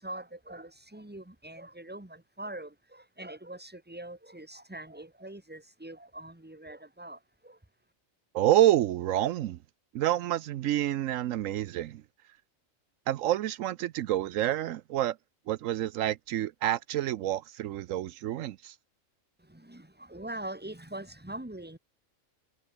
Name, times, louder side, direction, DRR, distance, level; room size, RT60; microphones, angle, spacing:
voice 1, 0.0-7.6 19.4-21.8, right 1 dB, 5° right, 2.1 m, -43 dB
voice 2, 8.3-9.6 9.9-12.0 13.1-15.2 15.5-18.7, right 13 dB, 80° right, 1.0 m, -28 dB
omnidirectional pair, 1.4 m